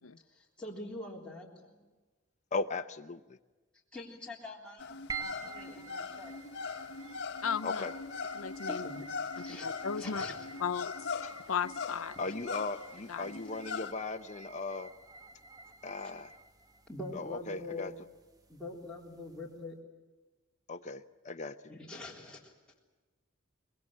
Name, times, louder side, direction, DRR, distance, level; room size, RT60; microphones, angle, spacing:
voice 1, 0.3-1.8 3.9-6.4 8.7-9.0 9.4-10.5 12.3-12.4 16.9-17.9 18.5-19.7 21.7-22.5, left 2 dB, 5° left, 3.6 m, -44 dB
voice 2, 2.5-3.2 7.6-7.9 11.2-11.3 12.2-14.9 15.8-16.3 17.2-17.9 20.7-21.6, left 3 dB, 35° left, 0.8 m, -37 dB
sound 1, 4.8-13.9, left 4 dB, 55° left, 1.4 m, -40 dB
sound 2, 5.1-19.6, right 5 dB, 20° right, 1.4 m, -50 dB
voice 3, 7.4-7.8 8.4-8.9 9.4-10.2 10.6-10.9 11.5-12.2 13.1-13.3, left 6 dB, 75° left, 0.7 m, -35 dB
25.0 x 21.5 x 7.5 m
head